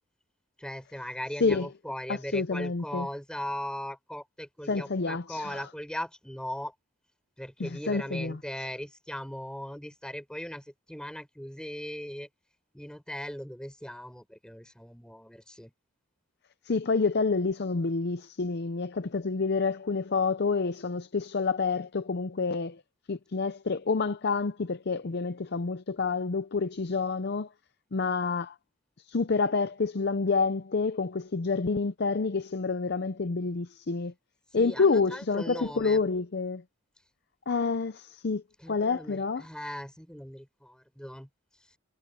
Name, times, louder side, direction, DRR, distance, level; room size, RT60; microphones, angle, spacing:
voice 1, 0.6-6.7 7.4-12.3 12.7-15.7 34.5-36.0 38.6-41.3, left 1 dB, 5° left, 4.1 m, -39 dB
voice 2, 2.1-3.1 4.7-5.6 7.6-8.4 16.7-22.8 23.1-27.5 27.9-28.5 29.1-34.1 34.5-36.6 37.5-38.4 38.7-39.4, left 4 dB, 55° left, 0.6 m, -28 dB
head